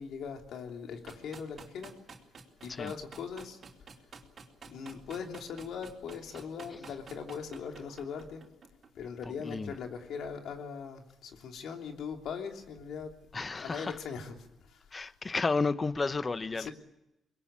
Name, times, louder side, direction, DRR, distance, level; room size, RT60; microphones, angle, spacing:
voice 1, 0.0-1.9 2.6-3.6 4.6-8.4 8.9-13.1 13.6-14.8 16.5-16.7, left 6 dB, 75° left, 3.2 m, -40 dB
sound 1, 1.1-9.5, right 5 dB, 45° right, 4.2 m, -50 dB
voice 2, 9.4-9.7 13.3-14.0 14.9-16.7, left 4 dB, 30° left, 1.0 m, -32 dB
23.5 x 21.5 x 8.8 m
cardioid pair, 90°, 0 cm